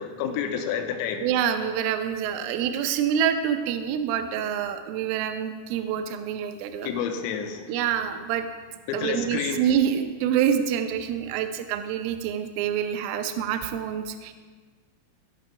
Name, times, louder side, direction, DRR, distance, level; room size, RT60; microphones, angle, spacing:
voice 1, 0.0-1.2 6.8-7.7 8.9-9.6, left 7 dB, 85° left, 5 dB, 3.5 m, -29 dB
voice 2, 1.2-6.9 7.7-8.5 8.9-14.3, right 9 dB, 80° right, 7 dB, 3.1 m, -26 dB
17.0 x 6.0 x 5.5 m, 1.5 s
omnidirectional pair, 5.9 m